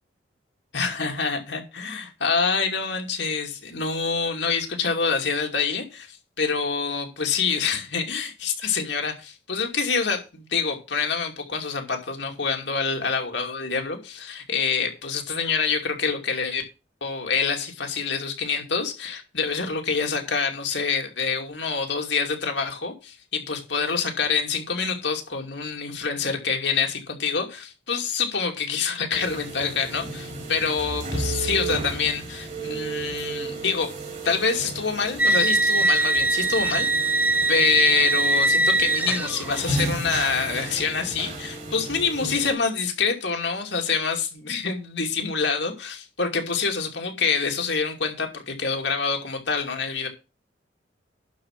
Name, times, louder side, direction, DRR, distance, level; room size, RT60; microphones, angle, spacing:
voice 1, 0.7-16.6 17.0-33.9 34.2-36.9 37.5-50.1, left 5 dB, 65° left, 2.5 m, -26 dB
sound 1, 29.1-42.5, right 2 dB, 40° right, 3.8 m, -33 dB
sound 2, 35.2-39.7, right 2 dB, 10° right, 0.5 m, -21 dB
11.5 x 4.9 x 6.0 m
head